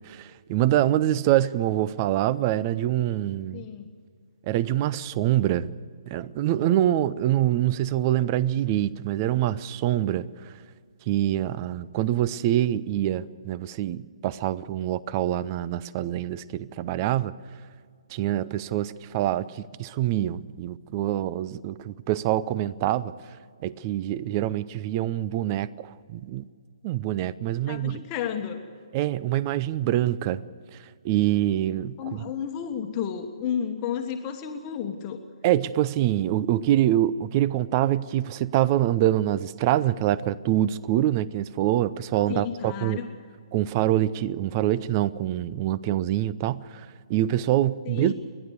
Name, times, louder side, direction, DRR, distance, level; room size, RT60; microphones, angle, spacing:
voice 1, 0.0-3.7 4.5-5.7 6.1-10.5 11.1-17.3 18.1-23.1 23.6-26.5 26.8-28.0 28.9-30.4 30.7-30.8 31.0-32.2 35.4-43.0 43.5-48.1, right 13 dB, 30° right, 0.5 m, -25 dB
voice 2, 3.5-3.9 27.7-28.6 32.0-35.2 42.3-43.1 47.8-48.1, left 8 dB, 25° left, 1.3 m, -32 dB
29.5 x 11.0 x 8.3 m
figure-of-eight pair, 140°, 3 cm